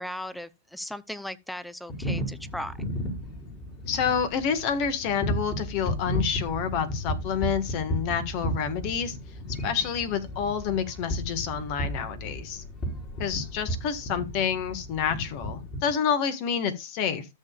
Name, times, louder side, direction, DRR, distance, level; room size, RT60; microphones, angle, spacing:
voice 1, 0.0-2.8, left 1 dB, ahead, 0.6 m, -37 dB
sound 1, 1.9-15.9, equal, 30° left, 4.5 m, -34 dB
voice 2, 3.9-9.2 9.6-12.6 13.2-17.3, left 7 dB, 45° left, 1.5 m, -28 dB
13.5 x 6.9 x 2.4 m
hypercardioid pair, 130°, 0 cm